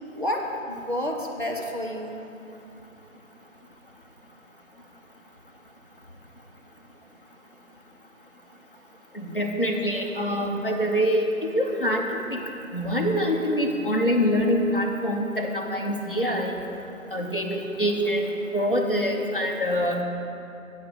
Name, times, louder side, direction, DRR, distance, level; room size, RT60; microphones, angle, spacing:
voice 1, 0.1-2.2, left 1 dB, 40° right, 0 dB, 0.8 m, -30 dB
voice 2, 9.1-12.4 12.7-16.6 17.1-20.0, equal, 40° left, 0 dB, 0.9 m, -25 dB
8.0 x 6.3 x 6.8 m, 2.7 s
figure-of-eight pair, 175°, 42 cm